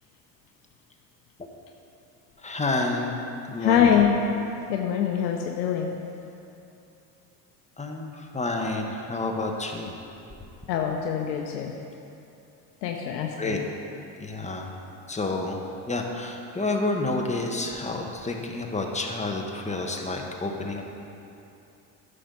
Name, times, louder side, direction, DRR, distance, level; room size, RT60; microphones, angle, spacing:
voice 1, 2.4-3.1 3.5-4.0 7.8-9.9 13.4-13.6 14.2-14.7 15.1-15.6 15.9-20.8, left 2 dB, 15° left, 1 dB, 1.3 m, -29 dB
voice 2, 3.6-4.2 4.7-6.0 10.7-11.7 12.8-13.6, left 8 dB, 90° left, 1 dB, 0.8 m, -24 dB
10.0 x 6.5 x 5.4 m, 2.8 s
hypercardioid pair, 80°, 50 cm